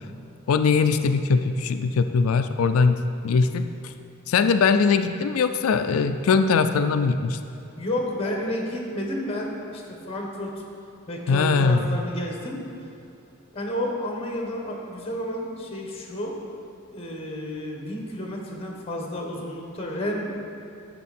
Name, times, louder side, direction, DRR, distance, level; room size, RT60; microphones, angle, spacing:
voice 1, 0.5-3.9 4.3-7.4 11.3-12.0, left 5 dB, 85° left, 8 dB, 0.4 m, -21 dB
voice 2, 7.8-10.5 11.1-12.6 13.5-16.4 16.9-20.3, left 1 dB, 30° left, 0 dB, 1.3 m, -31 dB
11.0 x 7.1 x 4.3 m, 2.6 s
head